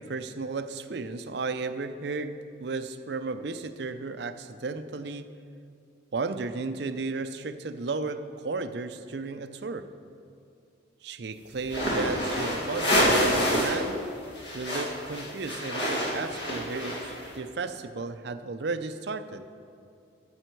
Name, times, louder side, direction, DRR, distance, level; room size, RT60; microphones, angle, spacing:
voice 1, 0.0-5.3 6.1-9.9 11.0-14.0 14.5-19.5, right 3 dB, 60° right, 10 dB, 0.5 m, -34 dB
sound 1, 11.6-13.9 14.1-17.3, equal, 65° left, 2.3 m, -27 dB
12.5 x 7.8 x 4.6 m, 2.4 s
head